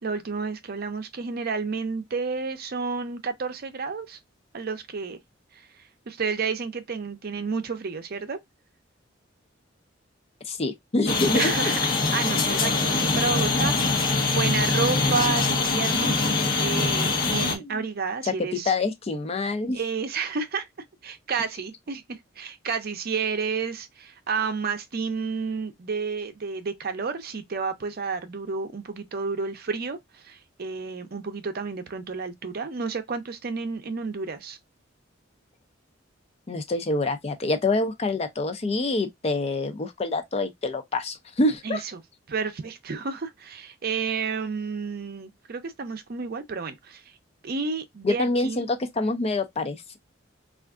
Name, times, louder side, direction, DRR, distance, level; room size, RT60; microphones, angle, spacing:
voice 1, 0.0-4.2 4.5-5.2 5.5-5.7 6.1-8.4 11.3-18.7 19.7-20.7 21.0-34.6 41.6-42.0 42.3-47.1 47.4-48.7, right 5 dB, 50° right, 0.6 m, -31 dB
voice 2, 10.5-11.5 17.6-17.8 18.2-18.3 18.7-19.8 36.5-41.8 48.0-50.0, left 2 dB, 30° left, 0.5 m, -26 dB
sound 1, 11.1-17.6, left 3 dB, 50° left, 0.9 m, -23 dB
3.4 x 2.5 x 2.3 m
head